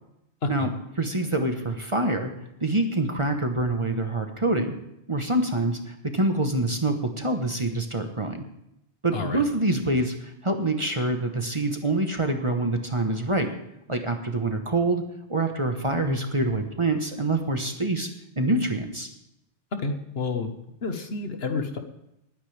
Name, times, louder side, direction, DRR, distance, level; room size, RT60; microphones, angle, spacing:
voice 1, 1.0-2.3 2.6-4.8 5.1-8.4 9.0-13.5 13.9-15.0 15.3-18.1 18.4-19.1, right 2 dB, 25° right, 5 dB, 1.2 m, -26 dB
voice 2, 9.1-9.4 19.8-20.5 20.8-21.8, left 4 dB, 60° left, 6 dB, 1.5 m, -29 dB
20.5 x 9.8 x 3.4 m, 0.83 s
omnidirectional pair, 1.2 m